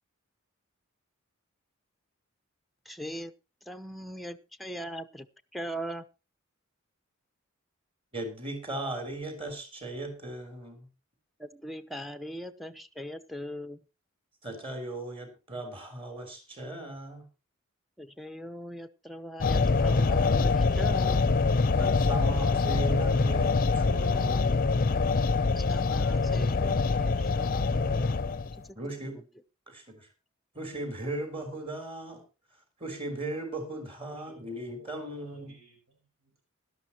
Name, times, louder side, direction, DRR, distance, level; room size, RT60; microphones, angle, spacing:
voice 1, 2.9-3.3 3.7-5.3 5.5-6.0 11.4-13.8 18.0-21.3 25.6-28.2 28.6-28.7, equal, ahead, 9 dB, 0.7 m, -40 dB
voice 2, 8.1-10.9 14.4-17.3 21.8-24.8 28.8-29.2 29.7-30.1 30.5-32.2 32.8-35.5, right 1 dB, 25° right, 5 dB, 3.7 m, -37 dB
sound 1, 19.4-28.6, left 4 dB, 40° left, 0.6 m, -25 dB
voice 3, 34.1-36.4, right 2 dB, 75° right, 3 dB, 5.8 m, -58 dB
17.5 x 12.0 x 2.9 m, 0.28 s
head